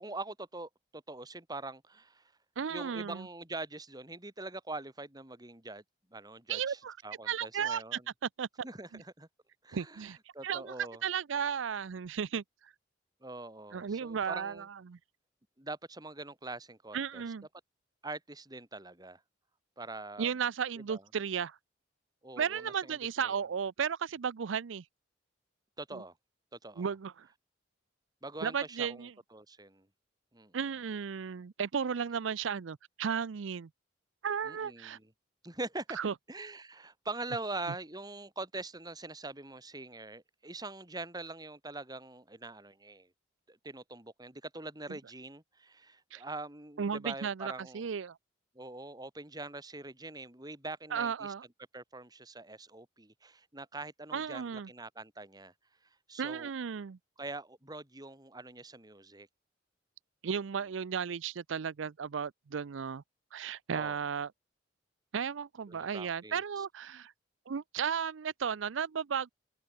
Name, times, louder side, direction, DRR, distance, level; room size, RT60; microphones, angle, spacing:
voice 1, 0.0-2.3 2.7-5.8 6.1-8.0 8.6-9.3 9.6-11.0 13.2-14.7 15.6-17.2 18.0-19.2 19.8-20.3 20.9-21.0 22.2-23.0 23.2-23.4 25.8-26.1 26.6-26.9 28.2-29.9 30.3-30.6 34.4-35.0 35.4-36.0 36.3-43.1 43.5-47.9 48.5-51.3 51.7-55.5 56.1-56.5 57.2-59.3 63.7-64.0 65.7-66.6, right 2 dB, 20° right, 2.9 m, -43 dB
voice 2, 2.6-3.3 6.5-7.0 7.3-8.0 8.4-8.5 8.9-9.0 9.7-10.2 10.4-10.7 11.0-12.7 13.7-15.0 16.9-17.5 20.2-21.6 22.4-24.8 25.9-26.0 26.8-27.3 28.4-29.1 30.5-33.7 34.2-35.0 35.9-36.1 44.9-45.0 46.1-46.2 46.8-48.2 50.9-51.5 54.1-54.7 56.2-57.0 60.2-63.0 63.3-64.3 65.1-67.1 67.5-69.3, right 7 dB, 85° right, 0.5 m, -34 dB
open air
head